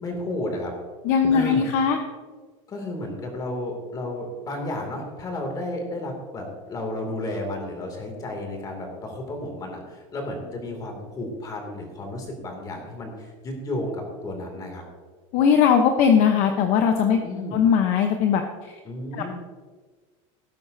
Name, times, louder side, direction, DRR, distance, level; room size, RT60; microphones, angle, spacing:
voice 1, 0.0-0.7 1.3-1.6 2.7-14.8 17.2-17.6 18.8-19.3, left 1 dB, 20° left, 3 dB, 2.6 m, -32 dB
voice 2, 1.0-2.0 15.3-17.2 17.5-18.4 19.1-19.2, left 7 dB, 45° left, 5 dB, 0.9 m, -19 dB
18.0 x 9.1 x 2.7 m, 1.5 s
supercardioid pair, 155°, 17 cm